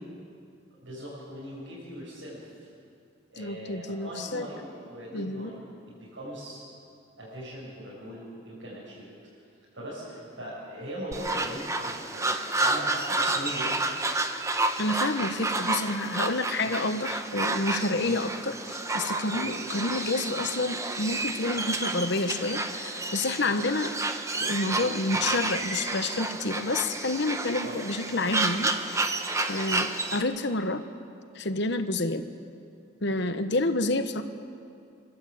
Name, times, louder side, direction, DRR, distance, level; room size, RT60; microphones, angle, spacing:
voice 1, 0.8-2.5 3.3-6.6 7.2-9.1 9.7-13.8 16.6-16.7 18.0-18.2 19.4-19.5 21.6-21.8 25.1-25.3 27.6-27.8, equal, 85° right, -9 dB, 6.9 m, -40 dB
voice 2, 3.4-4.5 5.1-5.5 14.8-23.9 24.4-29.1 29.5-30.8 31.3-32.2 33.0-34.2, left 2 dB, 65° left, 9 dB, 1.1 m, -29 dB
sound 1, 11.1-30.2, right 2 dB, 15° right, 0.9 m, -30 dB
25.5 x 13.0 x 8.5 m, 2.4 s
head